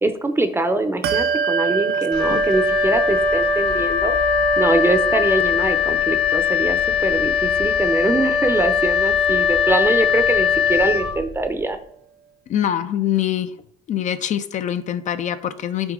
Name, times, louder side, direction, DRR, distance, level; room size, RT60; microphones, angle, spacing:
voice 1, 0.0-4.2 4.6-11.8, right 2 dB, 15° right, 9 dB, 0.6 m, -23 dB
Bell, 1.0-11.0, right 6 dB, 65° right, 0.6 m, -28 dB
Wind instrument woodwind instrument, 2.1-11.6, left 7 dB, 70° left, 1.2 m, -20 dB
voice 2, 12.5-13.5 13.9-15.9, left 10 dB, 45° left, 11 dB, 0.4 m, -24 dB
6.2 x 4.1 x 3.7 m, 0.69 s
cardioid pair, 110°, 17 cm